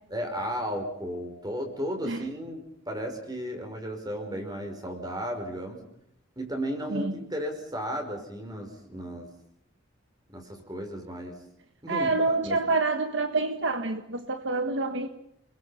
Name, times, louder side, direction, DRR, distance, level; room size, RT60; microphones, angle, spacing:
voice 1, 0.1-5.8 6.4-9.3 10.3-11.4 11.8-12.6, equal, 20° right, 5.4 m, -34 dB
voice 2, 11.9-15.1, right 3 dB, 60° right, 1.4 m, -27 dB
29.5 x 22.0 x 5.8 m
head